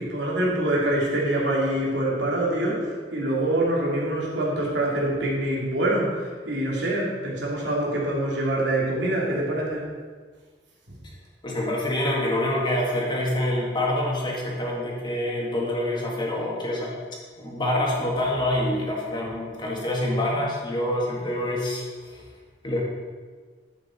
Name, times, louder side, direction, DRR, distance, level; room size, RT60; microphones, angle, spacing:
voice 1, 0.0-9.8 10.9-11.0, right 1 dB, 90° right, -4 dB, 3.0 m, -25 dB
voice 2, 11.4-16.9 17.4-22.2 22.6-22.8, left 1 dB, 25° left, -3 dB, 2.2 m, -26 dB
11.0 x 8.2 x 4.5 m, 1.5 s
head